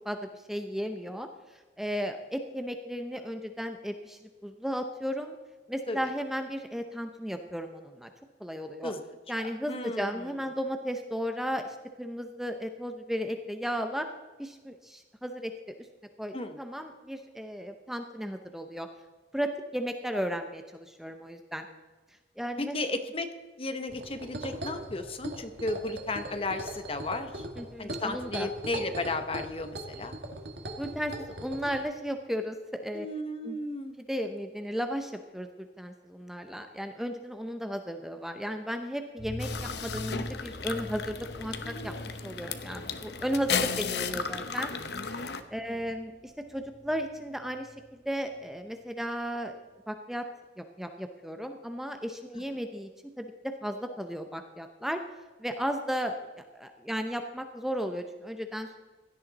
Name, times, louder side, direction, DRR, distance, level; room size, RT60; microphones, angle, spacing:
voice 1, 0.0-5.4 5.7-8.1 8.4-8.9 9.3-14.1 14.4-15.5 15.8-15.9 16.2-18.9 19.3-21.7 22.4-22.8 27.6-28.5 30.8-31.1 31.4-33.1 33.4-33.6 34.0-44.8 45.1-49.6 49.9-50.3 50.6-52.9 53.2-55.0 55.4-58.8, equal, ahead, 6 dB, 0.6 m, -35 dB
voice 2, 9.7-10.3 16.3-16.6 22.6-23.3 23.6-27.4 27.8-30.2 32.9-33.9 45.7-45.8, left 2 dB, 30° left, 8 dB, 0.9 m, -34 dB
sound 1, 23.9-31.8, right 1 dB, 65° right, 2.0 m, -40 dB
sound 2, 39.2-48.8 49.0-49.1 49.4-49.5, left 1 dB, 50° left, 3.9 m, -44 dB
sound 3, 39.4-45.4, left 6 dB, 65° left, 0.9 m, -35 dB
16.5 x 11.5 x 4.0 m, 1.3 s
head